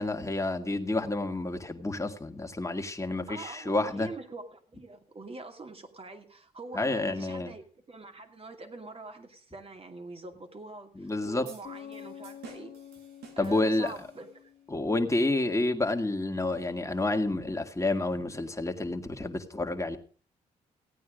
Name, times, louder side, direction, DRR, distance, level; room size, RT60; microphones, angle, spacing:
voice 1, 0.0-4.1 6.7-7.5 11.0-11.4 13.4-13.9 14.7-20.0, left 2 dB, 20° left, 2.1 m, -29 dB
voice 2, 3.3-12.7 13.4-14.5, right 3 dB, 35° right, 2.5 m, -45 dB
sound 1, 11.4-14.5, right 6 dB, 85° right, 2.1 m, -52 dB
Bass guitar, 11.6-15.3, left 9 dB, 75° left, 1.3 m, -48 dB
16.0 x 9.3 x 5.1 m
supercardioid pair, 50°, 16 cm